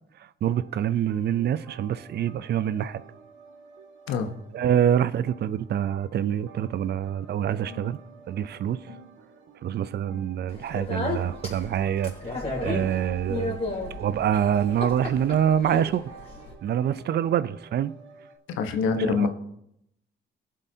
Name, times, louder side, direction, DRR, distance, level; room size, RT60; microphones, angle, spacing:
voice 1, 0.4-3.0 4.5-8.0 8.3-8.9 9.6-13.6 14.0-16.1 16.6-17.9 19.1-19.3, right 9 dB, 55° right, 0.5 m, -26 dB
sound 1, 0.5-18.4, right 5 dB, 75° right, 1.9 m, -49 dB
Speech, 10.5-16.5, left 2 dB, 30° left, 3.5 m, -34 dB
voice 2, 18.5-19.3, left 5 dB, 90° left, 1.1 m, -25 dB
20.5 x 7.5 x 2.8 m
cardioid pair, 90°, 20 cm